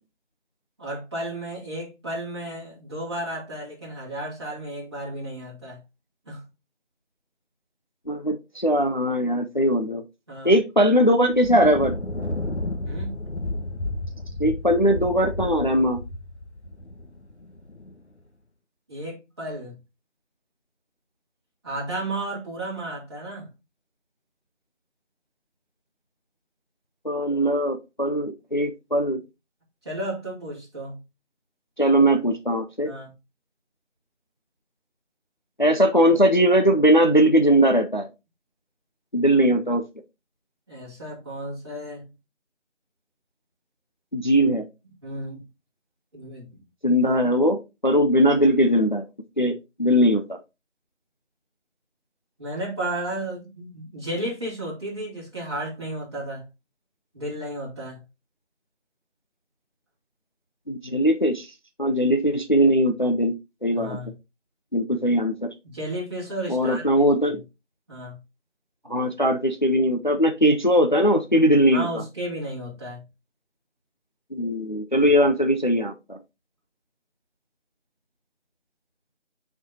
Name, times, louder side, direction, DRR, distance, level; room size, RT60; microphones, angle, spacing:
voice 1, 0.8-5.8 6.3-6.4 10.3-10.5 12.8-13.2 18.9-19.8 21.6-23.5 29.8-31.0 32.8-33.1 40.7-42.1 45.0-45.4 46.1-46.6 52.4-56.4 57.1-58.0 63.7-64.1 65.6-67.3 67.9-68.2 71.7-73.0, right 1 dB, 20° right, 2.6 m, -33 dB
voice 2, 8.1-10.0 10.4-12.0 14.4-16.0 27.0-29.2 31.8-32.9 35.6-38.1 39.1-39.8 44.1-44.6 46.8-49.0 49.4-50.4 60.7-61.5 61.8-63.3 63.6-64.0 64.7-65.5 66.5-67.4 68.9-72.0 74.3-76.2, equal, 40° left, 0.5 m, -20 dB
Thunder, 11.3-17.9, left 1 dB, 65° left, 1.3 m, -32 dB
8.2 x 4.6 x 2.8 m
figure-of-eight pair, 170°, 36 cm